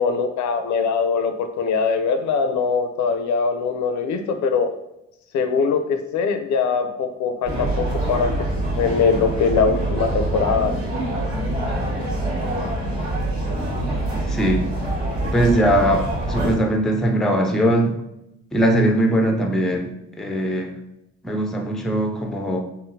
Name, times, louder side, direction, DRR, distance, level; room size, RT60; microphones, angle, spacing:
voice 1, 0.0-4.7 5.3-8.3 8.8-10.7, left 5 dB, 70° left, 8 dB, 0.4 m, -22 dB
sound 1, 7.4-16.5, right 1 dB, 25° right, 1.4 m, -25 dB
voice 2, 14.3-14.7 15.3-17.9 18.5-20.7 21.2-22.6, right 1 dB, ahead, 3 dB, 0.4 m, -20 dB
3.7 x 2.0 x 2.6 m, 0.85 s
cardioid pair, 90°, 30 cm